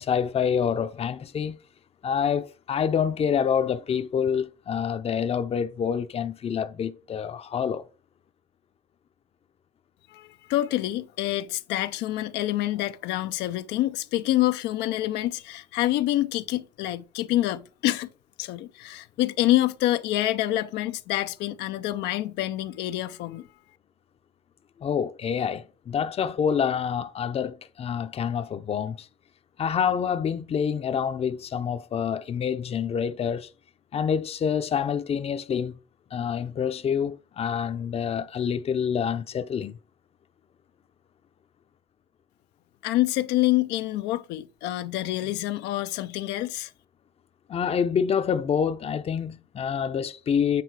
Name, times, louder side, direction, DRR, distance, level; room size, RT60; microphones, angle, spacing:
voice 1, 0.0-1.6 2.0-7.8 24.8-29.1 29.6-33.5 33.9-35.8 36.1-39.8 47.5-50.6, left 7 dB, 35° left, 0.6 m, -27 dB
voice 2, 10.1-18.1 18.4-23.5 42.8-46.7, left 15 dB, 90° left, 0.6 m, -27 dB
8.4 x 3.7 x 4.7 m
cardioid pair, 110°, 17 cm